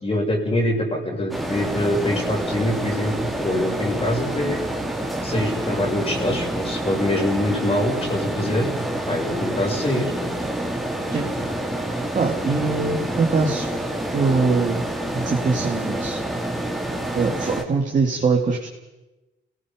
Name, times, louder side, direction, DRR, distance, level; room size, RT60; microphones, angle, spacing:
voice 1, 0.0-4.6 5.2-8.7 9.1-10.1, left 1 dB, 30° left, 0 dB, 6.5 m, -24 dB
sound 1, 1.3-17.6, right 1 dB, ahead, 3.7 m, -27 dB
voice 2, 12.1-13.7 14.1-14.8 15.1-16.2 17.1-18.7, right 4 dB, 40° right, -1 dB, 2.8 m, -22 dB
28.5 x 19.0 x 5.4 m, 1.1 s
cardioid pair, 90°, 20 cm